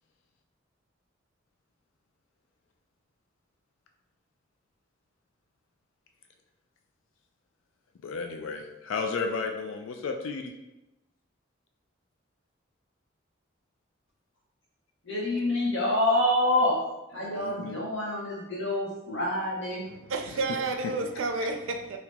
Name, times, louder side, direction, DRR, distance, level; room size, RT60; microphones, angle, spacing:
voice 1, 8.0-10.5 17.2-17.8 18.1-18.2 20.3-20.4 20.8-20.9 21.3-21.5, left 4 dB, 85° left, 0.4 m, -33 dB
voice 2, 15.1-16.8 17.1-19.9, left 1 dB, 65° left, 1.3 m, -27 dB
voice 3, 19.9-22.0, right 3 dB, 85° right, 0.4 m, -31 dB
2.9 x 2.8 x 3.5 m
head